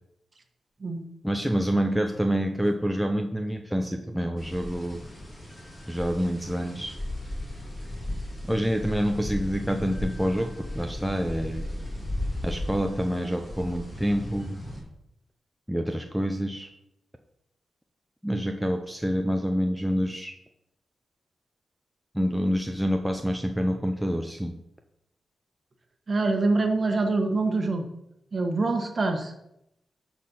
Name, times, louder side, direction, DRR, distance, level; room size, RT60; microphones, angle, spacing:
voice 1, 1.2-5.0 5.9-7.0 8.5-11.7 12.4-14.6 15.7-16.7 18.2-20.4 22.1-24.6, equal, ahead, 3 dB, 0.6 m, -27 dB
sound 1, 4.4-14.8, left 1 dB, 20° left, 2.5 m, -36 dB
voice 2, 26.1-27.9 28.3-29.3, right 3 dB, 35° right, 5 dB, 1.4 m, -25 dB
11.5 x 4.3 x 5.6 m, 0.82 s
wide cardioid pair, 125°, 0 cm